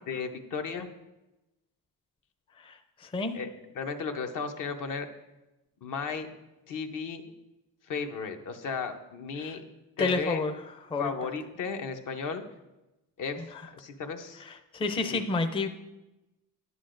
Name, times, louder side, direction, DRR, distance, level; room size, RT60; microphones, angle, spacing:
voice 1, 0.1-0.9 3.3-3.5 3.7-5.1 5.8-6.3 6.7-7.2 7.9-9.6 10.0-10.4 11.0-12.4 13.2-13.5 13.7-14.4 15.1-15.2, left 5 dB, 60° left, 6 dB, 0.9 m, -34 dB
voice 2, 3.0-3.3 9.4-9.6 10.0-10.5 10.9-11.1 14.7-15.7, left 3 dB, 15° left, 7 dB, 0.5 m, -29 dB
10.0 x 9.5 x 2.6 m, 1.0 s
cardioid pair, 110°, 36 cm